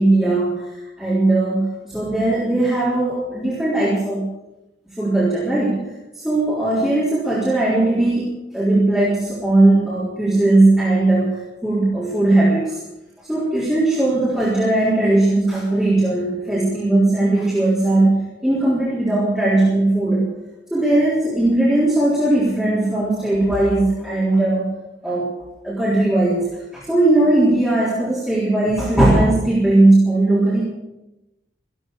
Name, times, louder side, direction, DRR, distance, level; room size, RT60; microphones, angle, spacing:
voice 1, 0.0-4.3 5.0-5.9 6.1-8.3 8.5-12.8 13.3-20.3 20.7-24.7 25.0-25.3 25.6-26.5 26.7-30.6, right 2 dB, 5° right, -9 dB, 3.6 m, -18 dB
15.5 x 12.0 x 6.5 m, 0.95 s
head